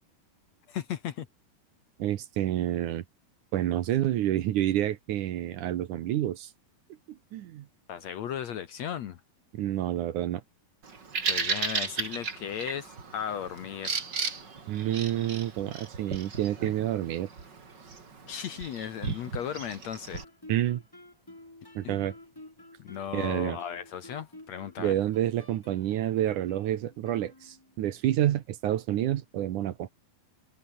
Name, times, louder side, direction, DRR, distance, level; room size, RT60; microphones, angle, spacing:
voice 1, 0.7-1.3 7.9-9.2 11.3-14.0 18.2-20.2 21.8-22.1 22.8-25.0, left 9 dB, 60° left, 2.0 m, -36 dB
voice 2, 2.0-3.0 3.5-6.5 7.1-7.7 9.5-10.4 14.7-17.3 20.5-20.8 21.8-22.1 23.1-23.6 24.8-29.9, right 12 dB, 65° right, 2.4 m, -28 dB
Bird vocalization bird call bird song, 10.8-20.2, right 5 dB, 30° right, 3.1 m, -35 dB
Guitar, 20.1-27.8, left 1 dB, 10° left, 1.5 m, -51 dB
omnidirectional pair, 4.1 m